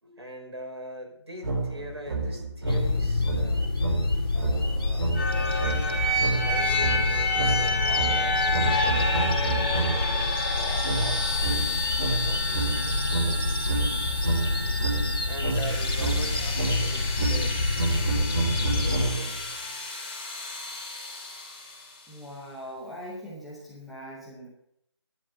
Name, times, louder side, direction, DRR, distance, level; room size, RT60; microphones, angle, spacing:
voice 1, 0.0-3.7 4.3-5.9 6.3-11.8 12.2-13.8 15.3-17.8 18.8-19.5, right 1 dB, 65° right, 1 dB, 5.4 m, -42 dB
sound 1, 1.4-10.2 10.8-19.5, right 3 dB, 45° right, 4.2 m, -29 dB
sound 2, 2.6-19.0, left 3 dB, 50° left, 2.1 m, -29 dB
sound 3, 5.1-21.9, left 2 dB, 20° left, 2.6 m, -30 dB
voice 2, 22.1-24.5, equal, ahead, -8 dB, 0.7 m, -41 dB
11.0 x 10.0 x 7.9 m, 0.73 s
figure-of-eight pair, 175°, 15 cm